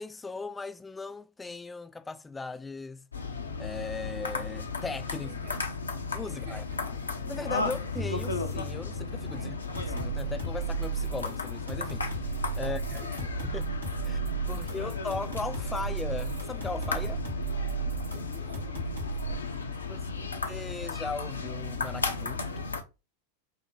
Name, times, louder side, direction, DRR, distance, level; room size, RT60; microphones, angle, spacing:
voice 1, 0.0-3.1 3.6-5.3 6.1-6.6 7.0-9.6 9.9-12.3 12.6-13.7 14.0-14.2 14.5-17.2 19.9-20.1 20.5-22.5, left 4 dB, 10° left, 0.4 m, -38 dB
sound 1, 3.1-22.8, left 4 dB, 75° left, 0.7 m, -35 dB
voice 2, 5.2-5.8 6.3-7.1 9.3-9.7 12.6-13.2 14.5-14.9 18.2-20.4, right 1 dB, 60° right, 2.5 m, -52 dB
sound 2, 7.9-9.5 9.7-11.5, left 1 dB, 25° right, 0.7 m, -43 dB
sound 3, 9.6-19.4, right 7 dB, 85° right, 2.0 m, -35 dB
5.6 x 2.1 x 3.4 m
figure-of-eight pair, 90°, 0 cm